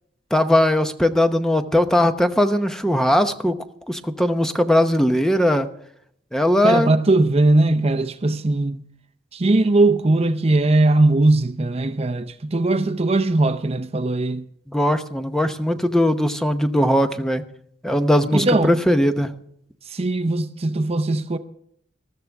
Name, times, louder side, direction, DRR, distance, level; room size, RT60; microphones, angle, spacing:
voice 1, 0.3-3.6 3.9-5.7 6.3-6.9 14.7-17.4 17.8-19.3, left 1 dB, 5° left, 0.8 m, -19 dB
voice 2, 6.6-8.8 9.3-14.4 18.3-18.8 19.9-21.4, right 2 dB, 35° right, 0.6 m, -19 dB
20.0 x 13.5 x 3.5 m
head